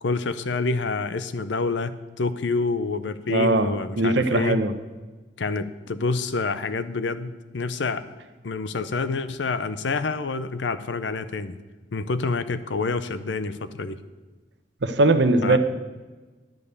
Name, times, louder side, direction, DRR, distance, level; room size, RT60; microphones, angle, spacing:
voice 1, 0.0-4.6 5.4-8.0 8.4-11.6 11.9-14.0 15.4-15.6, left 4 dB, 80° left, 13 dB, 0.6 m, -27 dB
voice 2, 3.3-3.7 4.0-4.7 14.8-15.6, right 2 dB, 70° right, 9 dB, 0.9 m, -20 dB
10.5 x 5.4 x 8.1 m, 1.3 s
head